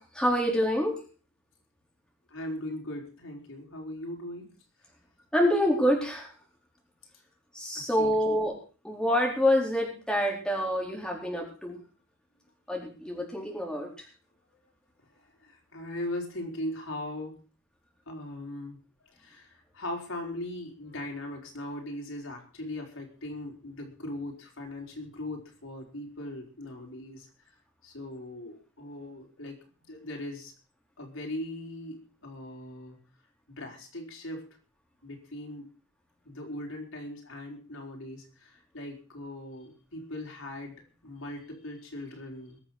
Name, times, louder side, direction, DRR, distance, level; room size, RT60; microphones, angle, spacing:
voice 1, 0.1-0.9 5.3-6.3 7.5-8.6 8.8-11.8 12.7-13.9, equal, 5° left, -1 dB, 4.4 m, -26 dB
voice 2, 2.3-4.5 7.7-8.2 14.5-14.6 15.2-17.4 18.1-18.8 19.1-27.5 27.8-30.5 31.0-33.0 33.5-34.5 35.0-35.7 36.2-42.6, left 1 dB, 90° left, 1 dB, 4.8 m, -39 dB
21.5 x 7.6 x 6.2 m, 0.38 s
head